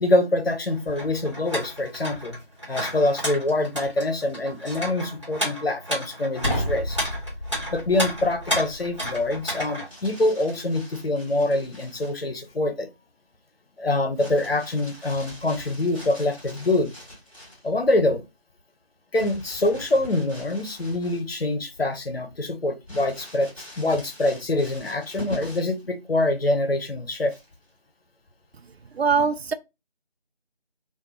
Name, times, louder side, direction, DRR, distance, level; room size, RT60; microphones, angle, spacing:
voice 1, 0.0-2.4 2.7-7.0 7.7-12.9 13.8-16.9 17.6-18.2 19.1-27.3, left 2 dB, 70° left, 0.7 m, -25 dB
sound 1, 0.7-9.9, equal, 30° right, 0.9 m, -32 dB
sound 2, 6.4-9.5, equal, 55° left, 1.2 m, -32 dB
Crumpling crinkling, 9.8-12.2 14.2-17.7 19.2-21.5 21.9-22.0 22.9-25.8 27.2-27.7, left 1 dB, 35° left, 1.1 m, -43 dB
voice 2, 28.9-29.5, right 5 dB, 80° right, 0.5 m, -22 dB
2.7 x 2.0 x 2.7 m
figure-of-eight pair, 170°, 31 cm